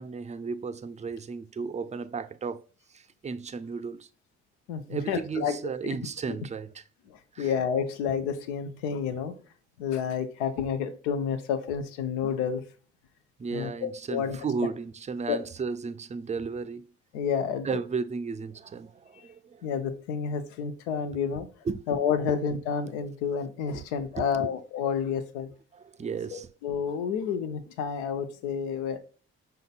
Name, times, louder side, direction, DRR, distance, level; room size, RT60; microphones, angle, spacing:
voice 1, 0.0-2.6 2.9-4.1 4.9-6.8 7.4-7.5 13.4-16.9 17.6-19.6 21.7-21.8 23.7-23.8 24.2-24.3 25.7-26.5, right 5 dB, 20° right, 0.4 m, -34 dB
voice 2, 4.7-5.6 5.8-6.0 7.1-9.4 9.8-12.6 13.5-14.4 15.3-15.4 17.1-17.7 19.1-19.3 19.6-21.5 21.9-25.5 26.3-29.0, left 7 dB, 90° left, 0.5 m, -30 dB
5.4 x 3.8 x 2.3 m
hypercardioid pair, 45°, 35 cm